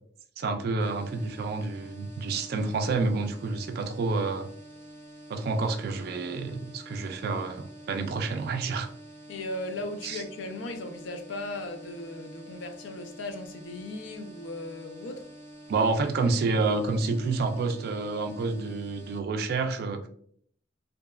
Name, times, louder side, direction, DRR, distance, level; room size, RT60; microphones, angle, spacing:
voice 1, 0.4-4.5 5.3-8.9 10.0-10.2 15.7-20.1, right 3 dB, 55° right, 6 dB, 0.3 m, -29 dB
sound 1, 0.8-19.2, right 1 dB, 10° left, 0.6 m, -48 dB
voice 2, 9.3-15.3, left 2 dB, 75° left, 7 dB, 0.4 m, -37 dB
2.7 x 2.2 x 2.2 m, 0.63 s
head